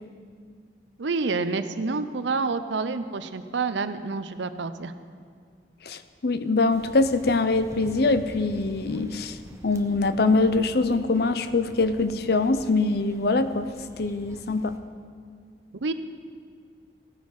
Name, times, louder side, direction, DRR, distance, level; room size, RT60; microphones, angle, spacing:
voice 1, 1.0-4.9 15.8-15.9, right 4 dB, 75° right, 11 dB, 0.6 m, -28 dB
voice 2, 5.8-9.4 9.6-13.7 14.0-14.7, left 3 dB, 55° left, 11 dB, 0.6 m, -23 dB
sound 1, 6.7-14.8, equal, 15° right, 0.8 m, -46 dB
16.5 x 9.5 x 4.8 m, 2.2 s
head